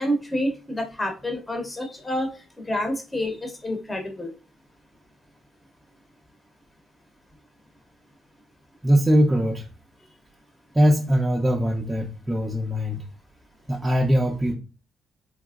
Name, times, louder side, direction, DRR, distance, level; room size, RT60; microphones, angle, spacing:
voice 1, 0.0-2.3 2.7-4.3, equal, 15° left, 4 dB, 0.8 m, -28 dB
voice 2, 8.8-9.7 10.7-13.0 13.7-14.5, equal, 15° right, -1 dB, 0.5 m, -21 dB
3.5 x 2.8 x 2.4 m, 0.34 s
cardioid pair, 90°, 0 cm